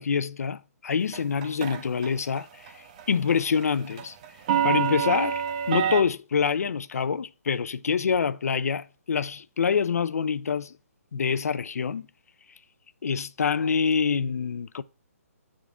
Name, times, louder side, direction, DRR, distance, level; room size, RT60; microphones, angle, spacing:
voice 1, 0.0-4.2 4.6-10.7 11.1-12.1 13.0-14.8, left 6 dB, 75° left, 0.4 m, -26 dB
sound 1, 1.1-2.1 2.4-2.7 3.0-6.0, right 8 dB, 30° right, 0.5 m, -26 dB
8.3 x 3.7 x 3.6 m
hypercardioid pair, 160°, 8 cm